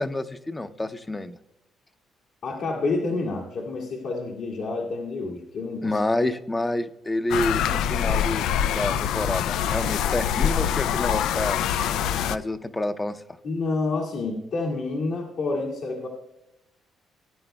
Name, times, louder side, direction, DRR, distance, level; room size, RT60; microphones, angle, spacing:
voice 1, 0.0-1.4 5.8-8.5 8.7-11.6 12.3-13.2, left 1 dB, 15° left, 11 dB, 0.7 m, -28 dB
voice 2, 2.4-6.0 13.4-16.1, left 3 dB, 70° left, -3 dB, 1.9 m, -28 dB
sound 1, 7.3-12.4, left 9 dB, 85° left, 0.3 m, -24 dB
18.5 x 10.0 x 2.3 m, 0.89 s
cardioid pair, 95°, 0 cm